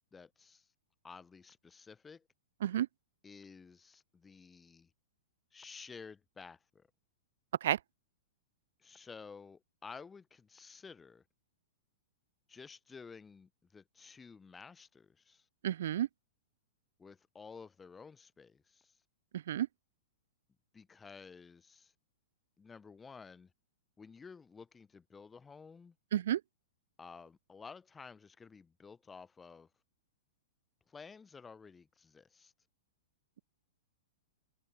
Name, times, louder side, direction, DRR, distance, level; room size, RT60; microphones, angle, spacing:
voice 1, 0.1-0.7 1.0-2.3 3.2-4.9 5.5-6.9 8.8-11.2 12.5-15.5 17.0-19.0 20.7-21.9 22.6-23.5 24.0-25.9 27.0-29.7 30.9-32.5, left 5 dB, 15° left, 3.1 m, -53 dB
voice 2, 15.6-16.1 19.5-19.7 26.1-26.4, right 11 dB, 60° right, 0.7 m, -31 dB
figure-of-eight pair, 105°, 0 cm